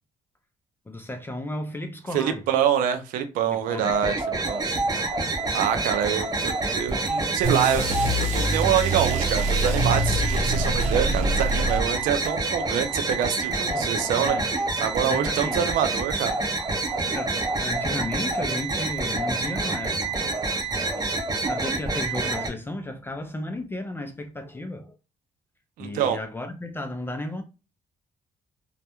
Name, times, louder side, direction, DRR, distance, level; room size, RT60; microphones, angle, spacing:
voice 1, 0.9-2.4 3.5-3.9 13.4-14.5 15.0-15.7 17.1-20.1 20.7-21.1 21.4-25.0 25.8-27.4, left 1 dB, 15° left, 0.4 m, -34 dB
voice 2, 2.1-4.6 5.5-14.4 14.8-16.4 25.8-26.2, right 9 dB, 85° right, 0.4 m, -26 dB
sound 1, 3.8-22.5, right 3 dB, 30° right, 0.6 m, -27 dB
sound 2, 7.4-12.2, right 1 dB, 65° right, 0.8 m, -25 dB
2.2 x 2.1 x 2.8 m
cardioid pair, 85°, 14 cm